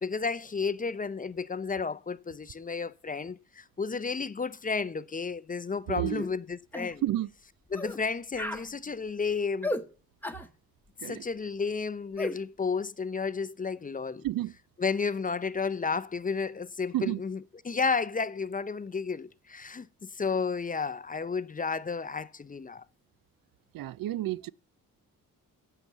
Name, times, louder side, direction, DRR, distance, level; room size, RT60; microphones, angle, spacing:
voice 1, 0.0-7.0 7.7-9.8 11.1-14.2 14.8-17.4 17.6-22.8, left 5 dB, 25° left, 0.5 m, -32 dB
voice 2, 5.9-6.3 7.0-7.3 11.0-11.2 14.2-14.5 16.9-17.2 23.7-24.5, right 14 dB, 75° right, 0.5 m, -31 dB
sound 1, 6.2-6.4 6.7-7.0 7.7-8.0 8.3-8.7 9.6-9.9 10.2-10.5 12.2-12.4, left 1 dB, 5° left, 1.0 m, -34 dB
11.5 x 8.0 x 7.3 m
cardioid pair, 90°, 35 cm